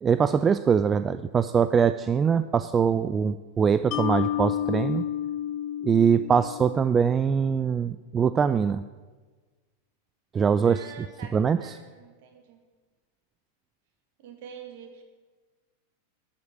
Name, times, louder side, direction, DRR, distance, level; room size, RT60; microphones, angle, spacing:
voice 1, 0.0-5.0 5.8-8.8 10.3-10.8 11.3-11.6, right 6 dB, 20° right, 13 dB, 0.3 m, -23 dB
Mallet percussion, 3.9-7.2, left 11 dB, 40° left, 0.8 m, -30 dB
voice 2, 10.6-12.6 14.2-15.0, right 6 dB, 50° right, 4 dB, 2.2 m, -46 dB
12.0 x 8.0 x 8.5 m, 1.3 s
figure-of-eight pair, 90°, 0 cm